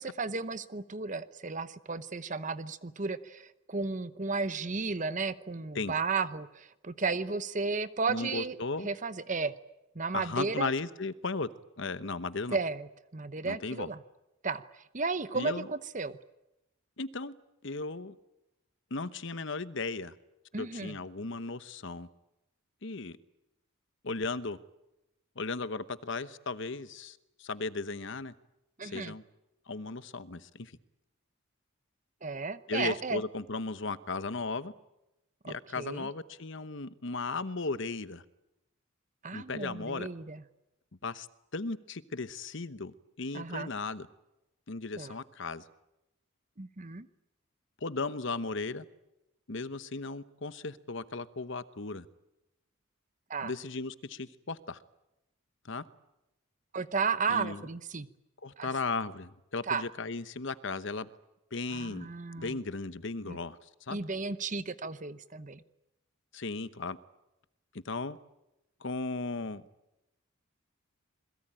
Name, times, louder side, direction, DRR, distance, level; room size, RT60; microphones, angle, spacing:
voice 1, 0.0-8.6 8.8-9.6 9.9-10.7 12.5-12.9 13.1-14.0 14.4-16.2 20.5-21.0 28.8-29.1 32.2-33.2 35.4-36.1 39.2-40.4 43.3-43.7 45.0-45.1 46.6-47.1 53.3-53.5 56.7-58.1 58.6-58.7 59.7-59.8 61.7-62.6 63.2-63.4 63.9-65.6, right 4 dB, 35° right, 0.9 m, -34 dB
voice 2, 8.1-8.9 10.1-11.5 11.8-12.6 13.4-13.9 15.3-15.7 17.0-17.3 17.6-18.2 18.9-20.1 20.6-22.1 22.8-23.2 24.0-24.6 25.4-28.3 28.8-29.2 29.7-30.7 32.7-34.7 35.5-38.2 39.3-40.1 41.0-41.3 41.5-44.1 44.7-45.6 47.8-48.8 49.5-52.1 53.4-54.8 55.6-55.8 57.3-57.6 58.4-61.1 61.5-62.1 62.4-63.6 63.9-64.0 66.3-67.0 67.8-68.2 68.8-69.6, left 3 dB, 60° left, 1.0 m, -36 dB
28.0 x 21.5 x 9.0 m
head